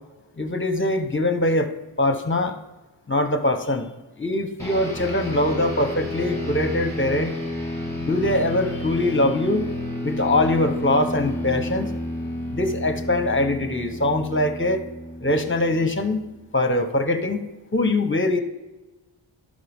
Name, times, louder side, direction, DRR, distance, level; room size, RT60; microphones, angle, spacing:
voice 1, 0.4-1.7 2.0-2.6 3.1-3.9 4.2-7.3 8.0-9.7 10.0-11.9 12.5-14.8 15.2-16.2 16.5-17.4 17.7-18.4, left 1 dB, 25° left, 8 dB, 1.0 m, -22 dB
sound 1, 4.6-16.3, left 1 dB, 5° left, 2.8 m, -31 dB
11.5 x 5.2 x 3.6 m, 1.1 s
cardioid pair, 40°, 49 cm